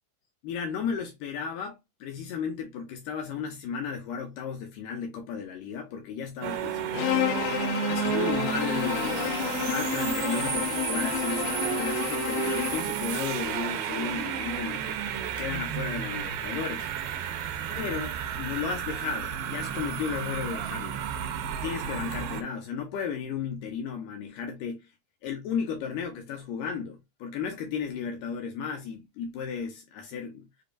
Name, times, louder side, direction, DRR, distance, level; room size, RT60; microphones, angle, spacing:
voice 1, 0.4-7.3 7.8-15.0 15.4-16.9 17.7-21.0 21.6-24.9 25.2-30.5, left 6 dB, 75° left, 2.2 m, -34 dB
sound 1, 6.4-22.4, right 9 dB, 80° right, 2.4 m, -32 dB
Bowed string instrument, 6.9-13.0, left 14 dB, 90° left, 2.4 m, -31 dB
6.8 x 2.8 x 2.5 m
omnidirectional pair, 4.2 m